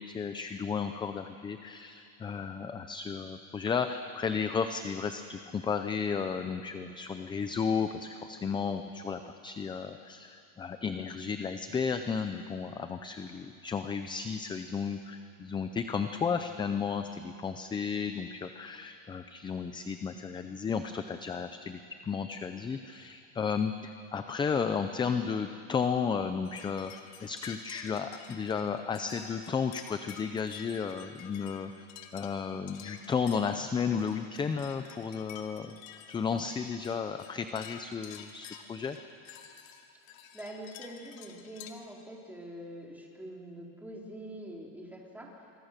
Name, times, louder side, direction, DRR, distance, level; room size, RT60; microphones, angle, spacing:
voice 1, 0.0-26.9 27.2-31.9 32.1-35.8 36.1-39.0, left 6 dB, 10° left, 8 dB, 0.5 m, -33 dB
sound 1, 26.5-41.7, left 9 dB, 65° left, 2.6 m, -51 dB
voice 2, 40.1-45.3, right 1 dB, 5° right, -2 dB, 3.7 m, -45 dB
27.0 x 23.5 x 6.7 m, 2.5 s
cardioid pair, 155°, 41 cm